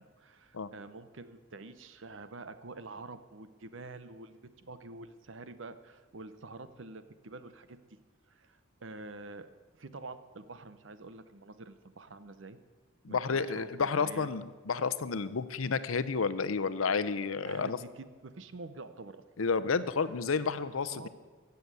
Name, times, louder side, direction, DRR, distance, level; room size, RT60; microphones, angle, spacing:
voice 1, 0.0-7.8 8.3-9.5 9.8-12.6 13.1-13.7 14.0-14.3 17.4-19.2 20.7-21.1, right 3 dB, 65° right, 12 dB, 0.9 m, -47 dB
voice 2, 13.0-17.8 19.4-21.1, left 5 dB, 90° left, 14 dB, 0.7 m, -31 dB
15.5 x 7.0 x 8.3 m, 1.5 s
head